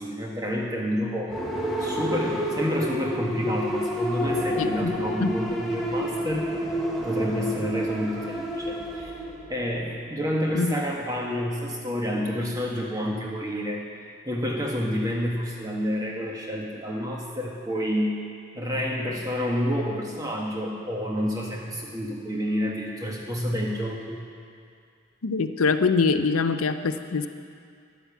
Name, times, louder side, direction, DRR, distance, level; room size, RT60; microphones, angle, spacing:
voice 1, 0.0-1.4 1.8-6.5 7.0-9.1 9.5-13.8 14.2-18.2 18.5-24.2, equal, 15° right, -1 dB, 1.4 m, -29 dB
sound 1, 1.3-10.0, equal, ahead, 1.2 m, -29 dB
sound 2, 4.2-11.6, right 1 dB, 35° right, 0.9 m, -43 dB
voice 2, 4.6-5.3 10.5-10.7 25.2-27.3, left 4 dB, 85° left, 9 dB, 0.6 m, -24 dB
10.5 x 10.0 x 7.0 m, 2.4 s
head